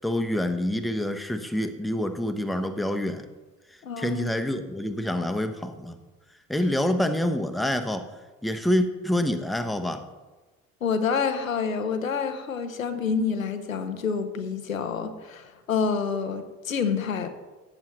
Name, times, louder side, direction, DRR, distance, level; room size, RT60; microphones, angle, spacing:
voice 1, 0.0-3.2 4.0-6.0 6.5-8.1 8.4-10.0, left 1 dB, ahead, 7 dB, 0.8 m, -27 dB
voice 2, 3.8-4.3 10.8-17.3, left 5 dB, 85° left, 9 dB, 0.7 m, -28 dB
14.0 x 8.6 x 3.1 m, 1.2 s
figure-of-eight pair, 50°, 39 cm